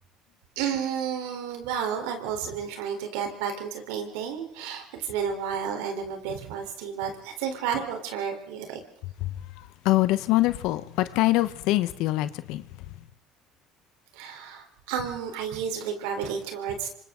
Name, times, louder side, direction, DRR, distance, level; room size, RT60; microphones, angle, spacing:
voice 1, 0.6-8.8 14.1-16.9, right 7 dB, 90° right, 4.1 m, -31 dB
voice 2, 9.2-12.9, left 17 dB, 75° left, 1.0 m, -25 dB
27.5 x 24.5 x 3.9 m
supercardioid pair, 95°, 0 cm